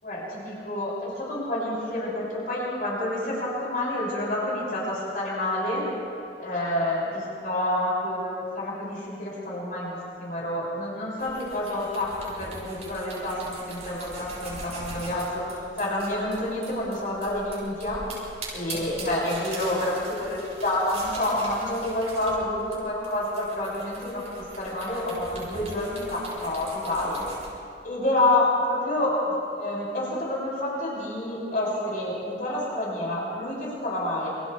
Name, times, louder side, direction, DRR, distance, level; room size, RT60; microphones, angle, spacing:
voice 1, 0.0-5.9 6.4-15.4 15.8-18.0 18.5-24.2 24.6-27.2 27.8-34.3, left 1 dB, 50° left, -6 dB, 7.1 m, -28 dB
sound 1, 11.2-27.5, right 2 dB, 40° right, 7.3 m, -41 dB
28.5 x 27.5 x 3.5 m, 2.7 s
head